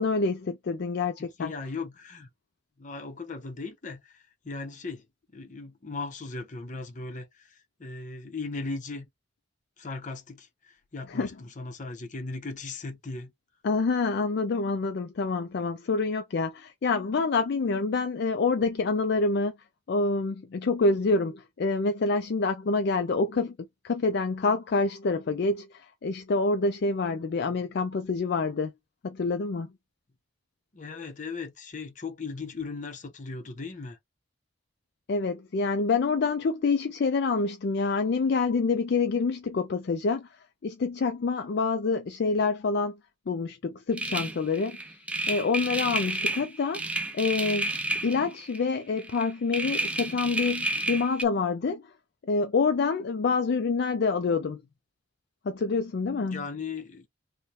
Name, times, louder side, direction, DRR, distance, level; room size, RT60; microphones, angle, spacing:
voice 1, 0.0-1.5 11.1-11.3 13.6-19.5 19.9-23.6 23.8-28.7 29.0-29.7 35.1-40.3 40.6-43.0 43.3-44.8 45.3-47.7 48.0-51.9 52.3-54.6 55.4-56.4, left 4 dB, 60° left, 0.4 m, -27 dB
voice 2, 1.2-2.3 2.8-5.0 5.3-9.1 9.8-10.5 10.9-13.3 30.7-34.0 56.2-57.1, left 3 dB, 40° left, 0.8 m, -37 dB
sound 1, 44.0-48.7 49.0-51.2, right 1 dB, 5° right, 0.4 m, -31 dB
3.2 x 2.2 x 4.0 m
head